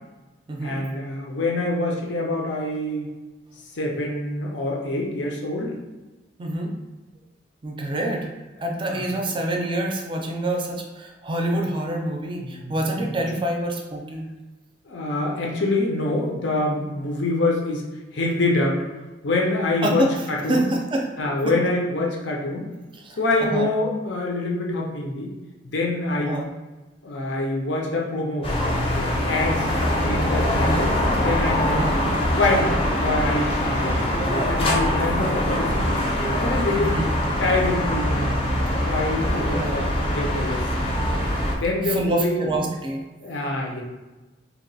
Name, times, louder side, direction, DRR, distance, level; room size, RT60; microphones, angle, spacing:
voice 1, 0.6-3.1 3.7-5.8 8.8-9.0 12.4-12.7 13.1-13.2 14.9-18.8 19.2-20.7 21.2-22.7 23.2-25.3 25.6-26.4 27.0-28.6 28.9-29.7 30.0-30.9 31.2-31.9 32.3-36.0 36.4-37.0 37.4-38.4 38.9-40.9 41.6-42.4 43.2-43.8, left 2 dB, 75° left, -1 dB, 0.6 m, -25 dB
voice 2, 6.4-6.7 7.6-8.3 8.6-14.3 19.8-20.1 20.5-21.5 22.9-23.7 26.1-26.5 30.5-30.9 31.7-32.0 36.8-37.1 39.4-39.8 41.9-43.1, right 1 dB, 25° right, 1 dB, 0.4 m, -26 dB
sound 1, 28.4-41.5, left 1 dB, 30° left, 0.6 m, -23 dB
2.8 x 2.2 x 3.9 m, 1.2 s
head